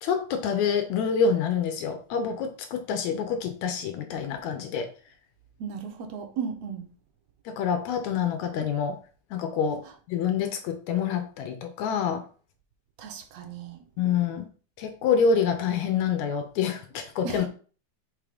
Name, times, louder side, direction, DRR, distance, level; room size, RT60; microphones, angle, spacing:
voice 1, 0.0-4.9 7.5-9.0 9.3-9.8 10.1-12.2 14.0-14.5 14.8-17.5, left 6 dB, 75° left, 1.9 m, -27 dB
voice 2, 5.6-6.9 13.0-13.8 17.2-17.5, right 6 dB, 70° right, 1.7 m, -35 dB
5.4 x 3.6 x 5.0 m
omnidirectional pair, 3.5 m